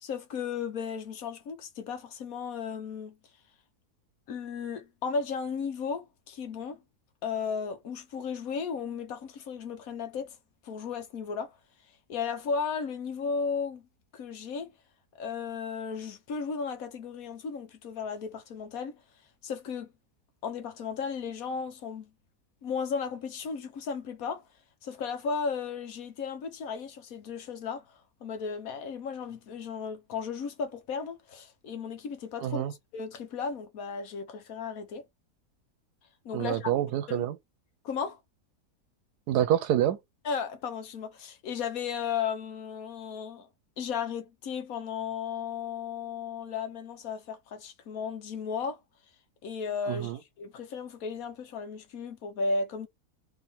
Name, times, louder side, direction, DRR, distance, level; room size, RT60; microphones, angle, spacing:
voice 1, 0.0-3.2 4.3-6.8 7.2-10.4 10.6-11.5 12.1-13.9 14.1-14.7 15.2-19.0 19.4-19.9 20.4-22.1 22.6-24.4 24.8-32.6 32.9-35.0 36.2-36.7 37.1-37.3 37.8-38.2 40.2-43.5 43.8-48.8 49.4-50.1 50.4-52.9, left 5 dB, 65° left, 1.3 m, -35 dB
voice 2, 32.4-32.7 36.3-37.4 39.3-40.0 49.9-50.2, right 11 dB, 90° right, 1.2 m, -27 dB
3.4 x 3.3 x 4.2 m
omnidirectional pair, 1.7 m